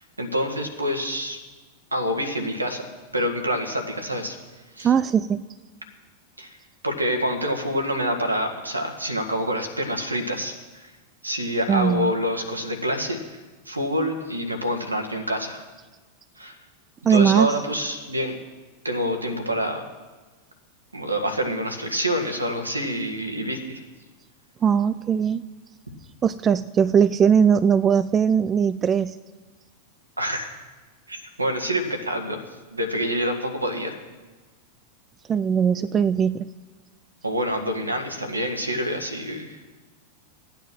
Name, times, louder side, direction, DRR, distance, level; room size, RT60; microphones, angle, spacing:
voice 1, 0.2-1.4 1.9-2.8 3.1-4.3 4.7-4.9 6.4-6.6 6.8-10.9 11.2-13.4 13.6-15.6 16.4-16.6 17.1-18.3 18.8-19.8 20.9-23.8 30.2-30.6 31.1-32.4 32.7-34.0 37.2-39.7, equal, 80° right, 5 dB, 1.7 m, -27 dB
voice 2, 4.8-5.4 11.7-12.1 17.0-17.5 24.6-25.4 26.2-29.1 35.3-36.5, right 7 dB, 25° right, 13 dB, 0.4 m, -20 dB
14.5 x 9.1 x 6.2 m, 1.3 s
figure-of-eight pair, 90°, 0 cm